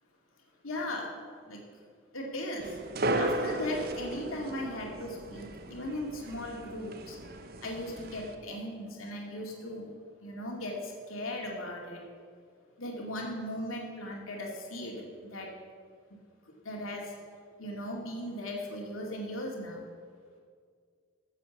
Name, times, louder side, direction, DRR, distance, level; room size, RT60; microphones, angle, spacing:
voice 1, 0.6-1.1 1.4-1.6 2.1-2.8 3.2-7.2 7.6-9.9 10.2-12.0 12.8-15.0 15.3-15.5 16.6-17.1 17.6-19.8, left 1 dB, 80° left, -1 dB, 2.4 m, -37 dB
sound 1, 2.6-8.3, right 1 dB, 50° right, 0.9 m, -35 dB
14.5 x 7.3 x 7.2 m, 2.1 s
head